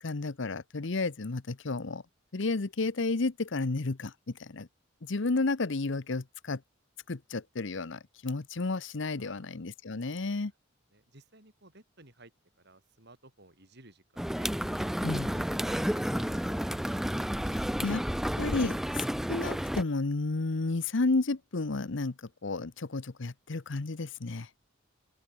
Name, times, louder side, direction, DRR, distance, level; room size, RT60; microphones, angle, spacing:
voice 1, 0.0-2.0 2.3-4.7 5.0-6.6 7.1-10.5 15.0-15.2 17.5-18.0 18.4-24.5, left 3 dB, 65° left, 0.9 m, -32 dB
voice 2, 9.2-9.5 10.1-10.4 10.9-12.3 12.6-17.0, right 2 dB, 55° right, 6.5 m, -56 dB
sound 1, 14.2-19.8, equal, ahead, 0.3 m, -31 dB
open air
head